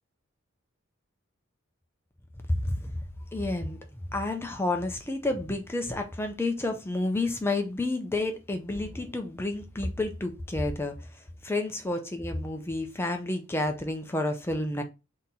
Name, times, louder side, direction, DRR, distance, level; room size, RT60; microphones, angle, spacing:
voice 1, 2.5-2.9 3.3-3.8 4.1-10.9 11.4-14.8, left 2 dB, 10° left, 0.4 m, -30 dB
3.8 x 2.8 x 4.0 m
head